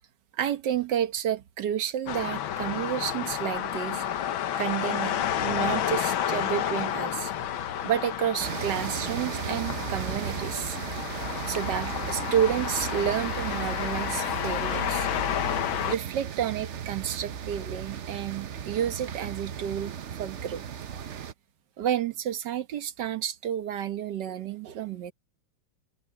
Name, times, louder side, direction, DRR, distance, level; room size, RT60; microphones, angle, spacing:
voice 1, 0.4-4.0 4.6-7.3 7.7-10.8 11.5-15.1 15.9-20.6 21.8-25.1, right 9 dB, 60° right, 1.6 m, -30 dB
sound 1, 2.1-16.0, left 10 dB, 75° left, 1.8 m, -31 dB
sound 2, 8.4-21.3, right 8 dB, 75° right, 0.6 m, -36 dB
omnidirectional pair, 2.3 m